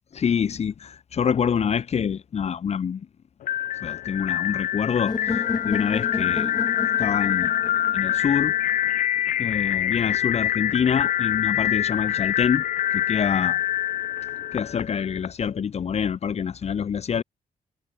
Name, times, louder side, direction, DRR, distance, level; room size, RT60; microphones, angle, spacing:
voice 1, 0.1-3.0 3.8-5.2 5.6-6.6 7.0-7.5 7.9-8.5 9.4-12.6 12.9-13.6 14.5-17.2, left 7 dB, 55° left, 0.9 m, -26 dB
sound 1, 3.4-15.3, left 12 dB, 85° left, 1.2 m, -25 dB
sound 2, 5.1-9.0, left 4 dB, 30° left, 2.0 m, -32 dB
cardioid pair, 75°, 14 cm